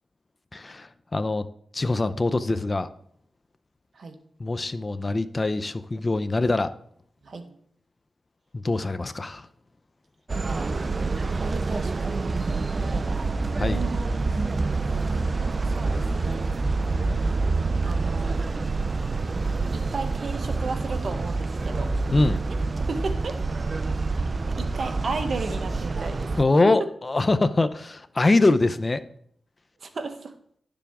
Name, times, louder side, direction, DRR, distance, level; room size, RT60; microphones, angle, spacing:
voice 1, 0.5-1.5 1.7-2.9 4.4-6.7 8.5-9.5 13.6-13.8 22.1-22.4 26.4-29.0, left 2 dB, 35° left, 11 dB, 0.6 m, -23 dB
voice 2, 7.2-7.6 11.4-14.8 15.6-16.4 17.8-18.3 19.7-21.9 22.9-23.4 24.6-26.3 26.6-26.7 29.8-30.3, right 3 dB, 60° right, 6 dB, 1.2 m, -34 dB
sound 1, 10.3-26.4, right 3 dB, 40° right, 0.4 m, -27 dB
11.5 x 6.9 x 3.6 m, 0.65 s
cardioid pair, 70°, 0 cm